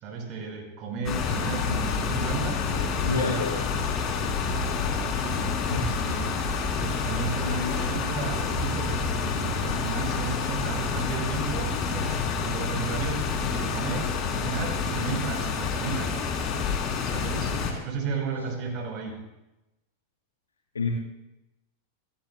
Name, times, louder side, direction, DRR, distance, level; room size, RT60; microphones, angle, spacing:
voice 1, 0.0-2.6 3.1-3.3 5.1-5.6 5.8-6.4 6.7-9.0 9.3-16.2 17.0-17.6 17.8-19.2, right 4 dB, 40° right, 2 dB, 5.3 m, -33 dB
sound 1, 1.1-17.7, left 5 dB, 35° left, 3.3 m, -28 dB
voice 2, 2.7-3.6 5.7-5.9 20.7-20.9, left 4 dB, 75° left, 0 dB, 2.0 m, -28 dB
30.0 x 17.5 x 2.2 m, 0.94 s
figure-of-eight pair, 90°, 0 cm